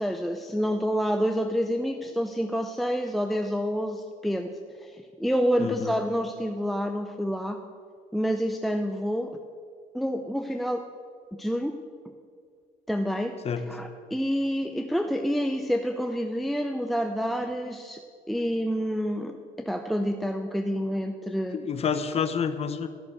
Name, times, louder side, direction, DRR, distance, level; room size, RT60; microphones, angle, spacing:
voice 1, 0.0-4.5 4.8-7.6 8.1-9.3 9.9-10.8 11.4-11.7 12.9-13.3 13.7-18.0 18.3-21.6, equal, ahead, 5 dB, 0.5 m, -28 dB
voice 2, 5.6-5.9 13.4-13.7 21.5-22.9, left 6 dB, 35° left, 10 dB, 0.9 m, -28 dB
12.5 x 6.7 x 7.8 m, 2.1 s
cardioid pair, 110°, 17 cm